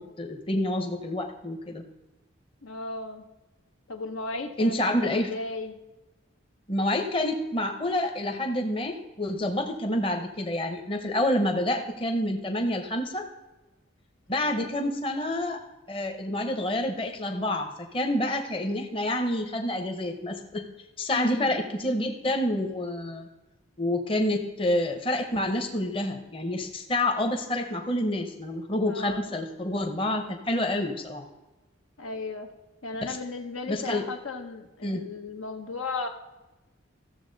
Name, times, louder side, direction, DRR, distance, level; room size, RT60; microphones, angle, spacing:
voice 1, 0.0-1.8 4.6-5.3 6.7-13.3 14.3-15.6 15.9-20.6 21.0-23.3 23.8-31.3 33.1-33.2 33.7-34.0 34.8-35.0, left 1 dB, 25° left, 4 dB, 0.8 m, -28 dB
voice 2, 2.6-3.2 3.9-5.8 14.3-14.7 21.1-21.5 28.9-29.4 32.0-32.5 32.8-36.1, left 3 dB, 85° left, 4 dB, 1.1 m, -35 dB
14.5 x 7.0 x 4.0 m, 1.1 s
head